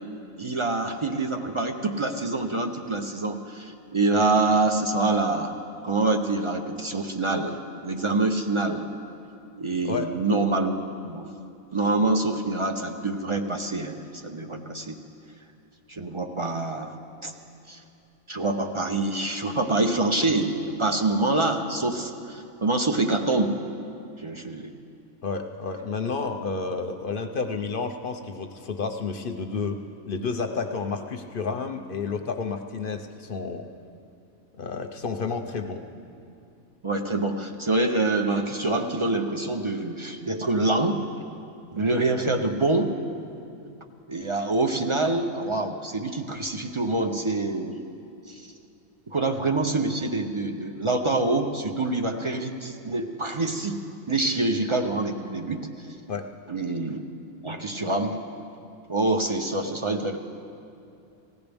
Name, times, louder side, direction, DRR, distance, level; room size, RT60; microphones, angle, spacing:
voice 1, 0.4-5.6 5.8-7.6 7.8-8.9 9.6-10.8 11.0-11.3 11.7-14.9 15.9-16.9 17.2-17.3 17.7-17.8 18.3-23.6 24.2-24.7 36.8-41.0 41.7-43.0 44.1-47.8 48.3-48.5 49.1-53.8 54.1-55.7 56.5-57.0 57.4-58.2 58.9-60.2, right 2 dB, 30° right, 3 dB, 0.5 m, -26 dB
voice 2, 25.2-29.8 30.1-33.6 34.6-35.8 56.1-56.3, left 4 dB, 50° left, 6 dB, 0.7 m, -30 dB
20.0 x 16.0 x 3.5 m, 2.6 s
omnidirectional pair, 1.4 m